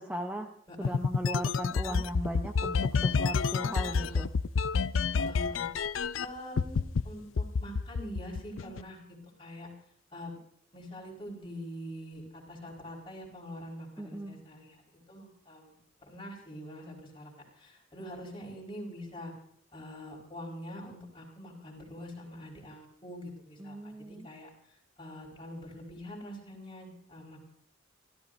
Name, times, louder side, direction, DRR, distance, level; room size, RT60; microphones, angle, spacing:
voice 1, 0.0-0.5 0.8-4.3 14.0-14.4 23.6-24.3, right 1 dB, 10° right, 4 dB, 0.8 m, -38 dB
sound 1, 0.8-6.3 6.6-7.0 7.4-8.8, left 5 dB, 80° left, 0.5 m, -28 dB
voice 2, 3.7-4.2 5.1-5.6 6.2-9.0 9.4-9.7 10.1-10.4 10.7-14.8 15.1-15.7 16.1-17.3 17.6-19.3 19.7-27.4, equal, 25° left, -2 dB, 4.6 m, -44 dB
29.0 x 14.0 x 2.6 m, 0.65 s
head